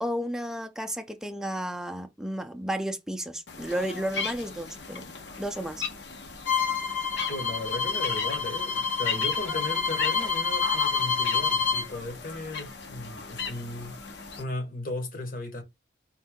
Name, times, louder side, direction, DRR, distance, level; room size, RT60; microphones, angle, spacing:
voice 1, 0.0-5.1 5.4-5.8, equal, 5° right, 0.5 m, -32 dB
sound 1, 3.5-14.4, left 5 dB, 65° left, 1.0 m, -37 dB
Bowed string instrument, 6.4-11.9, left 6 dB, 85° left, 2.8 m, -27 dB
voice 2, 7.3-15.6, left 2 dB, 50° left, 1.3 m, -36 dB
4.4 x 2.6 x 3.6 m
head